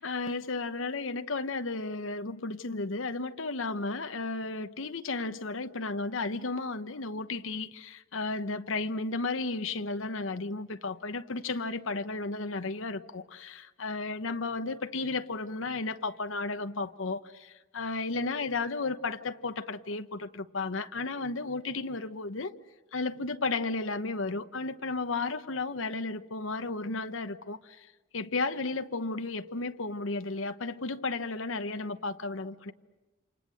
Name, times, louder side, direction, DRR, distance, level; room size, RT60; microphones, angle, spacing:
voice 1, 0.0-22.5 22.9-27.9 28.1-32.7, left 3 dB, 85° left, 1.1 m, -33 dB
28.5 x 27.0 x 7.8 m
head